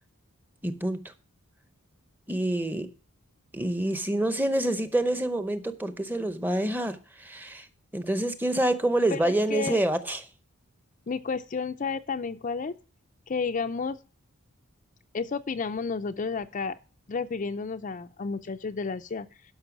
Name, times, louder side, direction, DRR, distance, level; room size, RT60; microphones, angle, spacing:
voice 1, 0.6-1.0 2.3-2.9 3.5-7.7 7.9-10.2, right 1 dB, 10° right, 0.7 m, -27 dB
voice 2, 9.1-9.8 11.1-12.7 13.3-14.0 15.1-16.8 17.1-19.3, left 5 dB, 35° left, 0.4 m, -31 dB
12.0 x 5.5 x 5.9 m
head